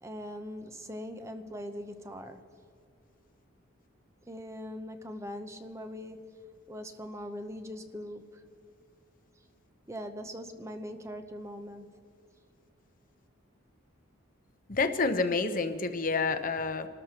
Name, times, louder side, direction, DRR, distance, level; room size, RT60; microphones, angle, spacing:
voice 1, 0.0-2.4 4.3-6.4 6.7-8.4 9.9-11.9, equal, 15° right, 8 dB, 0.7 m, -41 dB
voice 2, 14.7-16.9, left 4 dB, 40° left, 8 dB, 0.8 m, -28 dB
27.5 x 13.5 x 2.9 m, 2.3 s
head